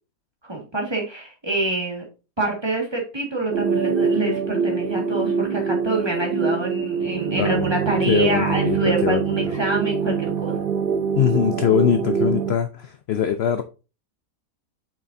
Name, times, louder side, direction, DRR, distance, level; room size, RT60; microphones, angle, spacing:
voice 1, 0.4-2.1 2.4-10.6, right 2 dB, 15° right, 1.8 m, -26 dB
sound 1, 3.5-12.6, right 6 dB, 65° right, 0.5 m, -24 dB
voice 2, 7.4-7.7 8.1-9.4 11.1-13.6, left 9 dB, 65° left, 0.6 m, -22 dB
7.3 x 5.6 x 2.6 m
omnidirectional pair, 1.6 m